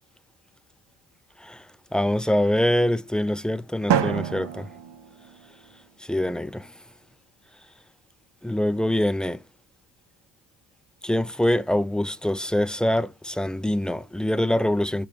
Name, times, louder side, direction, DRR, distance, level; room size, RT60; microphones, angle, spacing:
voice 1, 1.9-4.7 6.0-6.8 8.4-9.4 11.0-15.1, left 1 dB, ahead, 0.3 m, -24 dB
Drum, 3.9-5.9, right 9 dB, 55° right, 1.1 m, -28 dB
6.9 x 4.9 x 3.0 m
hypercardioid pair, 45°, 50 cm